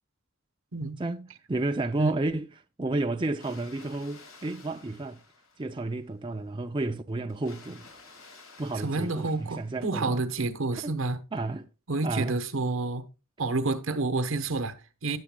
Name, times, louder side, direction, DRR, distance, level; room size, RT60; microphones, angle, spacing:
voice 1, 1.0-2.5 2.8-5.2 5.6-7.9 8.6-10.2 10.7-11.0 11.3-11.7 12.0-12.4, right 2 dB, 25° right, 0.5 m, -31 dB
Water, 3.2-6.1 7.3-10.1, left 4 dB, 75° left, 2.3 m, -53 dB
voice 2, 8.8-11.2 11.9-13.0 13.4-15.2, right 3 dB, 70° right, 1.1 m, -29 dB
18.0 x 7.1 x 2.3 m
head